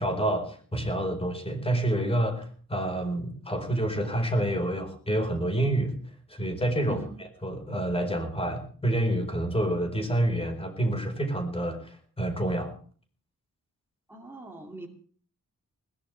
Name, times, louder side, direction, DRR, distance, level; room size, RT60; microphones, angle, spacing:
voice 1, 0.0-5.9 6.3-7.0 7.4-12.7, right 1 dB, 15° left, 5 dB, 4.6 m, -28 dB
voice 2, 6.8-7.1 14.1-14.9, right 2 dB, 5° right, 1 dB, 2.4 m, -42 dB
21.0 x 17.5 x 3.4 m, 0.43 s
wide cardioid pair, 135°, 33 cm